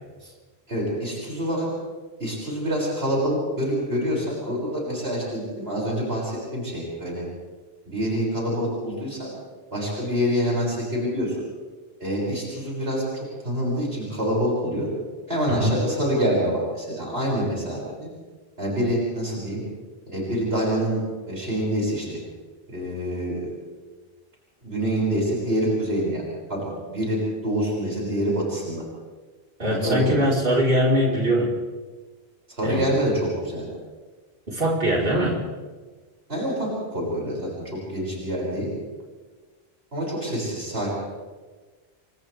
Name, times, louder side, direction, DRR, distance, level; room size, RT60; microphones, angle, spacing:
voice 1, 0.7-1.7 2.2-7.2 7.9-9.3 9.7-11.5 12.0-14.9 15.3-18.1 18.6-19.6 20.1-21.0 21.3-22.2 22.7-23.5 24.6-28.8 29.6-30.2 32.5-33.7 36.3-38.7 39.9-40.9, equal, 75° right, -5 dB, 6.8 m, -26 dB
voice 2, 29.6-31.5 32.6-32.8 34.5-35.4, equal, 60° right, -3 dB, 4.4 m, -21 dB
29.0 x 26.0 x 3.5 m, 1.3 s
omnidirectional pair, 1.1 m